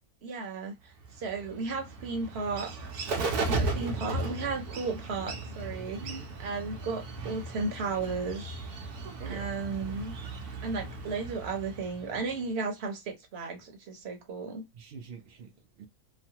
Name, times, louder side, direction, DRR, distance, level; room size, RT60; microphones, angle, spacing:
voice 1, 0.2-2.7 3.5-8.5 9.3-10.2 10.6-14.6, right 4 dB, 50° right, 0.9 m, -34 dB
Bird, 1.0-12.5, right 3 dB, 90° right, 1.2 m, -36 dB
voice 2, 5.9-6.3 9.2-9.5 14.7-15.9, right 5 dB, 75° right, 0.5 m, -44 dB
3.0 x 2.0 x 2.8 m
omnidirectional pair, 1.6 m